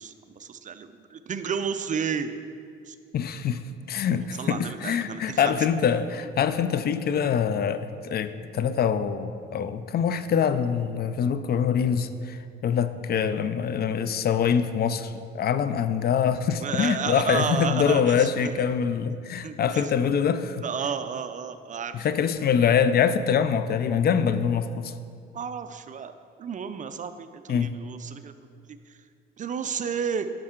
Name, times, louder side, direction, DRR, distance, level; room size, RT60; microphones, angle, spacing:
voice 1, 0.0-2.3 2.9-3.0 4.3-5.6 16.6-18.6 19.4-19.9 20.6-22.1 25.3-26.1 26.4-28.3 28.7-29.0 29.4-30.3, right 6 dB, 40° right, 10 dB, 0.4 m, -32 dB
voice 2, 3.1-20.6 21.9-24.9 27.5-27.7, left 7 dB, 50° left, 12 dB, 0.4 m, -24 dB
8.6 x 6.4 x 3.7 m, 2.3 s
cardioid pair, 90°, 20 cm